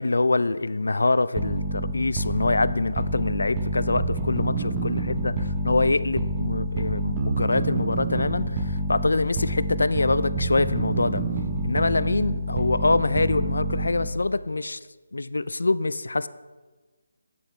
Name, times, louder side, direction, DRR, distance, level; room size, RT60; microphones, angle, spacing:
voice 1, 0.0-11.2 11.6-14.8 15.1-16.3, left 2 dB, 85° left, 15 dB, 0.3 m, -25 dB
sound 1, 1.4-14.3, right 1 dB, 15° right, 0.6 m, -28 dB
8.5 x 7.6 x 3.1 m, 1.3 s
figure-of-eight pair, 170°, 0 cm